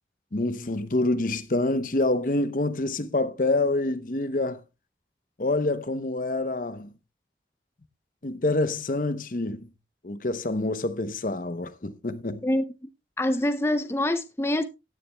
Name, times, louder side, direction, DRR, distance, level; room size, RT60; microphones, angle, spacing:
voice 1, 0.3-4.6 5.4-6.9 8.2-9.7 10.0-12.5, left 2 dB, 45° left, 0.8 m, -27 dB
voice 2, 12.4-12.9 13.2-14.6, left 1 dB, 15° left, 0.6 m, -25 dB
16.0 x 10.0 x 2.2 m
head